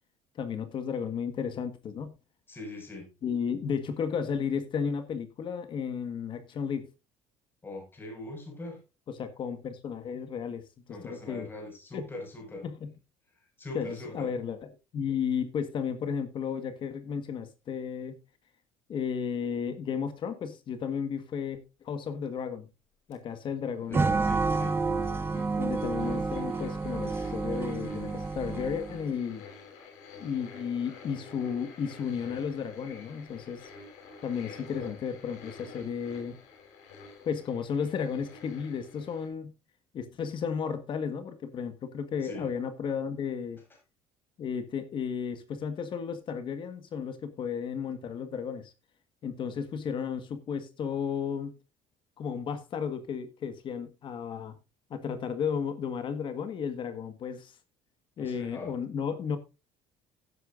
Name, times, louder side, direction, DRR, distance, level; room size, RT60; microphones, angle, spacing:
voice 1, 0.4-2.2 3.2-6.9 9.1-10.6 11.0-11.5 11.9-12.1 12.6-12.9 13.7-14.6 14.9-18.1 18.9-22.7 23.1-24.0 25.5-29.4 30.2-33.7 34.2-36.4 37.2-39.5 39.9-43.6 44.4-48.7 49.2-51.5 52.2-54.5 54.9-57.5 58.2-59.4, left 7 dB, 45° left, 1.6 m, -33 dB
voice 2, 2.5-3.1 7.6-8.8 10.9-12.6 13.6-14.3 23.8-24.8 42.2-42.5 58.2-58.7, left 2 dB, 15° left, 5.8 m, -41 dB
sound 1, 23.1-23.2 24.3-39.3, left 5 dB, 85° left, 5.6 m, -49 dB
sound 2, 23.9-29.1, right 4 dB, 20° right, 1.0 m, -29 dB
16.0 x 8.4 x 2.6 m
cardioid pair, 135°, 12 cm